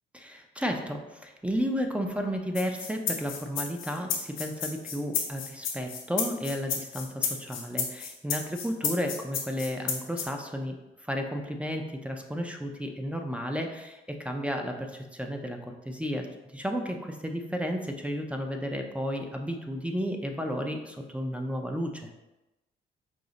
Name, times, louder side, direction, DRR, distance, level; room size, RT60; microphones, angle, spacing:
voice 1, 0.1-10.8 11.0-16.3 16.5-22.1, equal, 5° right, 3 dB, 0.4 m, -33 dB
sound 1, 2.6-10.3, left 6 dB, 85° left, 0.7 m, -31 dB
4.9 x 2.0 x 3.9 m, 1.0 s
cardioid pair, 90°, 20 cm